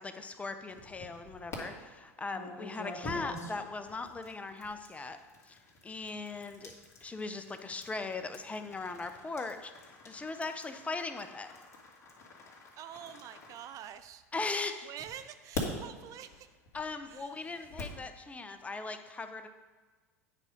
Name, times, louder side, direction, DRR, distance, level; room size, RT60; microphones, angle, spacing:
voice 1, 0.0-5.2 5.4-6.7 7.0-11.5 14.3-14.9 16.7-19.5, left 3 dB, 15° left, 8 dB, 0.7 m, -39 dB
sound 1, 0.7-1.6 2.3-14.3 15.0-18.0, left 3 dB, 35° left, 2.3 m, -46 dB
voice 2, 12.7-16.5 17.1-17.4, right 10 dB, 45° right, 12 dB, 0.4 m, -47 dB
9.3 x 4.8 x 5.3 m, 1.4 s
hypercardioid pair, 80°, 8 cm